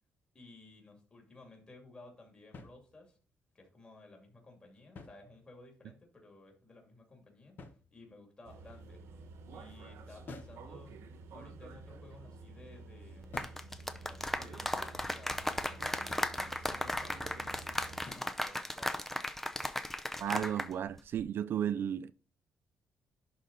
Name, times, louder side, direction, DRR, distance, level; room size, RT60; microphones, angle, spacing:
voice 1, 0.3-3.2 3.5-9.0 9.5-11.0 11.3-13.4 13.9-16.1 16.5-19.1, left 2 dB, 20° left, 2.6 m, -56 dB
sound 1, 2.5-3.3 4.8-5.8 7.6-8.4 10.3-10.7 13.3-13.7 16.1-16.4 18.1-18.4, left 3 dB, 40° left, 1.2 m, -51 dB
sound 2, 8.4-18.1, right 3 dB, 70° right, 1.3 m, -50 dB
sound 3, 13.2-20.7 21.0-21.2, left 1 dB, 5° left, 0.5 m, -36 dB
voice 2, 20.2-22.1, right 9 dB, 50° right, 0.3 m, -34 dB
11.5 x 4.0 x 4.0 m
cardioid pair, 150°, 5 cm